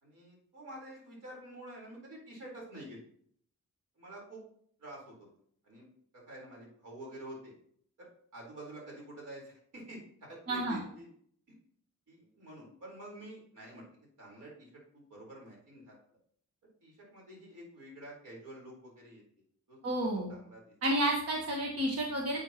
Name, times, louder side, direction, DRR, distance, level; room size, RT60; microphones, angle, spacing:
voice 1, 0.0-3.0 4.0-4.4 4.8-5.1 5.6-5.9 6.1-7.5 8.0-10.0 10.3-11.1 12.1-13.8 14.2-16.0 16.8-19.2 19.7-20.7, right 1 dB, 85° right, -2 dB, 3.9 m, -48 dB
voice 2, 10.5-10.8 19.8-20.3 20.8-22.4, right 1 dB, 55° right, -1 dB, 1.3 m, -31 dB
9.8 x 8.2 x 2.9 m, 0.63 s
wide cardioid pair, 170°, 30 cm